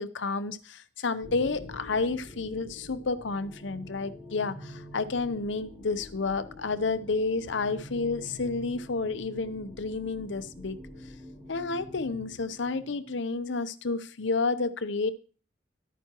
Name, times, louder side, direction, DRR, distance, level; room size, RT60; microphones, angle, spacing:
voice 1, 0.0-10.8 11.5-15.1, left 3 dB, 75° left, 12 dB, 0.7 m, -30 dB
sound 1, 1.2-13.2, equal, 15° right, 3.8 m, -46 dB
12.0 x 9.2 x 3.0 m, 0.38 s
head